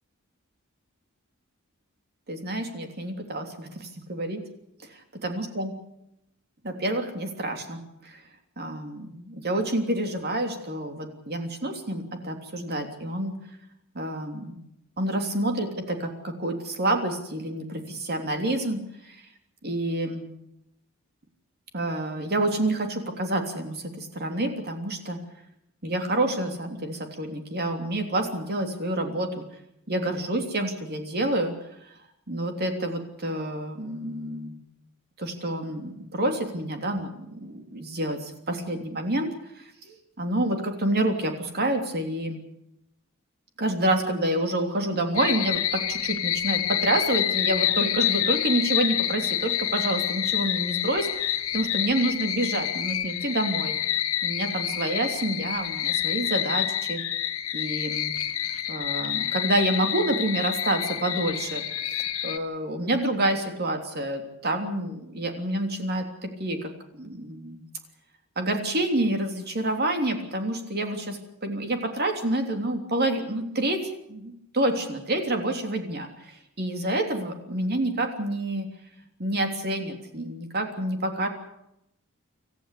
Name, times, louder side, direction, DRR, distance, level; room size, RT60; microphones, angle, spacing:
voice 1, 2.3-4.4 5.2-5.7 6.6-8.2 8.6-13.3 13.9-14.6 15.0-18.8 19.1-19.2 19.6-20.3 21.7-25.2 25.8-29.4 29.9-31.5 32.3-34.6 35.2-39.3 39.6-42.4 43.6-53.8 54.2-57.0 57.5-58.1 58.7-61.6 62.0-67.6 68.4-73.8 74.1-78.7 79.2-81.3, right 1 dB, 50° right, 4 dB, 3.3 m, -28 dB
sound 1, 45.1-62.4, left 11 dB, 80° left, 1.6 m, -28 dB
26.5 x 14.5 x 8.5 m, 0.82 s
head